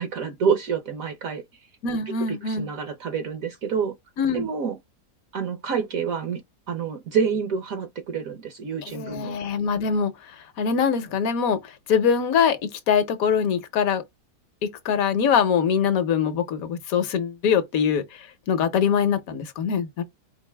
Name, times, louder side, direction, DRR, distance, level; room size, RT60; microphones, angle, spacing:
voice 1, 0.0-1.4 2.5-3.9 4.3-4.8 5.3-6.4 6.7-9.4, right 6 dB, 65° right, 1.1 m, -27 dB
voice 2, 1.8-2.7 4.2-4.5 8.8-10.1 10.6-14.0 14.6-20.0, left 7 dB, 65° left, 1.2 m, -23 dB
4.7 x 2.5 x 3.3 m
omnidirectional pair, 1.7 m